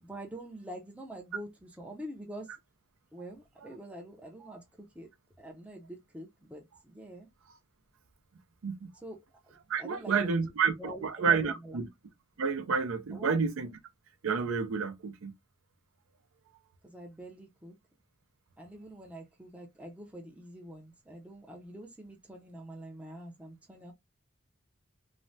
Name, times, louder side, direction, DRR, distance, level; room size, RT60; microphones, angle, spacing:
voice 1, 0.0-2.5 3.1-5.1 5.4-7.3 9.0-9.2 9.4-10.5 10.8-11.8 13.1-13.3 16.8-17.8 18.6-23.9, right 1 dB, 5° right, 0.5 m, -45 dB
voice 2, 9.7-11.9 12.4-13.7 14.2-15.3, right 5 dB, 70° right, 0.5 m, -29 dB
3.1 x 2.1 x 2.6 m
head